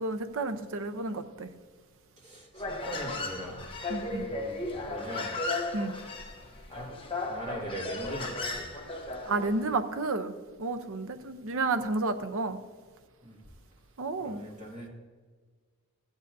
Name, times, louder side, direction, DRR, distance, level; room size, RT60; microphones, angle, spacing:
voice 1, 0.0-1.5 3.9-4.3 5.7-5.9 9.3-10.3 10.6-12.6 14.0-14.5, right 3 dB, 65° right, 0.7 m, -31 dB
voice 2, 2.2-3.6 4.2-5.3 6.7-6.9 7.3-8.7 13.2-13.4 14.2-14.9, right 1 dB, 35° right, 2.3 m, -41 dB
Human voice, 2.5-9.6, left 2 dB, 25° left, 1.0 m, -35 dB
15.0 x 8.9 x 2.7 m
head